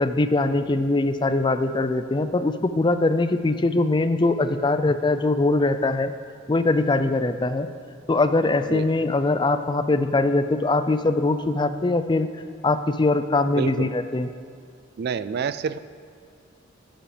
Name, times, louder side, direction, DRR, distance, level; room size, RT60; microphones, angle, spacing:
voice 1, 0.0-6.1 6.5-7.7 8.1-12.3 12.6-14.3, left 2 dB, 25° left, 10 dB, 0.4 m, -22 dB
voice 2, 13.6-13.9 15.0-15.8, right 6 dB, 55° right, 14 dB, 0.3 m, -28 dB
15.0 x 7.8 x 5.0 m, 2.3 s
head